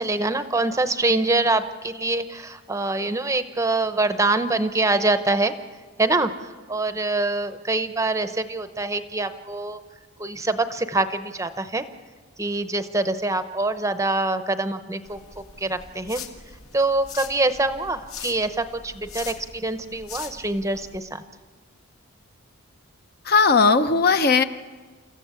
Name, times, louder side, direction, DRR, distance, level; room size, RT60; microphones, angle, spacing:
voice 1, 0.0-5.5 6.0-9.8 10.2-11.8 12.4-16.2 16.7-21.2, right 2 dB, 15° right, 10 dB, 0.7 m, -25 dB
sound 1, 15.0-21.0, left 7 dB, 75° left, 1.8 m, -41 dB
voice 2, 23.2-24.4, left 4 dB, 45° left, 10 dB, 0.7 m, -17 dB
29.5 x 14.5 x 8.3 m, 1.5 s
head